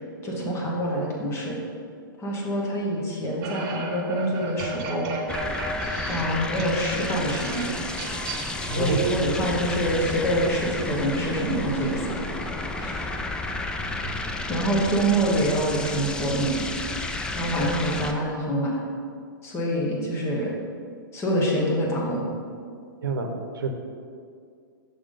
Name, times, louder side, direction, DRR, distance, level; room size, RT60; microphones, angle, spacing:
voice 1, 0.2-1.6 2.2-5.1 6.1-7.7 8.8-12.2 12.8-13.1 14.5-16.6 17.3-18.7 19.4-20.5 21.1-22.2, right 1 dB, 25° left, -2 dB, 1.3 m, -26 dB
sound 1, 3.4-8.9, right 3 dB, 35° right, 0.8 m, -35 dB
sound 2, 5.3-18.1, left 2 dB, 5° left, 0.3 m, -31 dB
voice 2, 8.7-9.0 14.0-14.2 23.0-23.7, right 3 dB, 80° right, 4 dB, 0.7 m, -28 dB
6.0 x 3.6 x 5.1 m, 2.3 s
hypercardioid pair, 125°, 12 cm